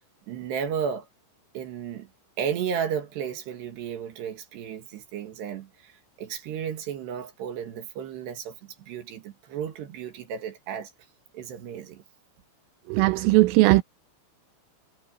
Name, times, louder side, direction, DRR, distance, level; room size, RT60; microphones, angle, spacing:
voice 1, 0.3-1.1 1.5-2.1 2.4-10.9 11.3-12.0, right 8 dB, 60° right, 3.6 m, -33 dB
voice 2, 12.9-13.8, right 20 dB, 85° right, 3.3 m, -18 dB
omnidirectional pair, 5.9 m